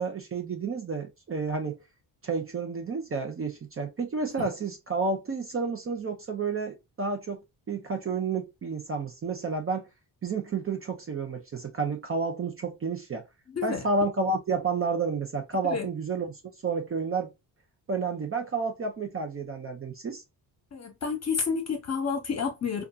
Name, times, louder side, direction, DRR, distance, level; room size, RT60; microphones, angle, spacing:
voice 1, 0.0-1.8 2.2-7.4 7.7-9.9 10.2-13.3 13.6-16.3 16.6-17.3 17.9-20.2, right 4 dB, 30° right, 0.5 m, -30 dB
voice 2, 13.5-13.8 15.6-15.9 20.7-22.8, left 5 dB, 35° left, 0.9 m, -30 dB
2.7 x 2.3 x 2.3 m
cardioid pair, 95°, 43 cm